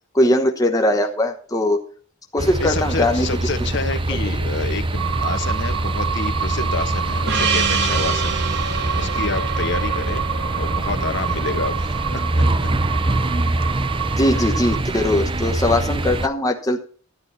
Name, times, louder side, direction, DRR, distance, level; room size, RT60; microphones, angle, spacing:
voice 1, 0.1-1.8 2.3-3.3 14.1-16.8, left 1 dB, 15° left, 4 dB, 0.9 m, -20 dB
sound 1, 2.4-16.3, right 2 dB, 25° right, 0.6 m, -24 dB
voice 2, 2.6-10.2 10.5-12.7, left 4 dB, 60° left, 9 dB, 1.3 m, -29 dB
sound 2, 5.0-14.8, right 8 dB, 80° right, 0.6 m, -28 dB
Gong, 7.3-12.0, right 5 dB, 60° right, 1.7 m, -27 dB
11.5 x 10.5 x 4.2 m, 0.43 s
head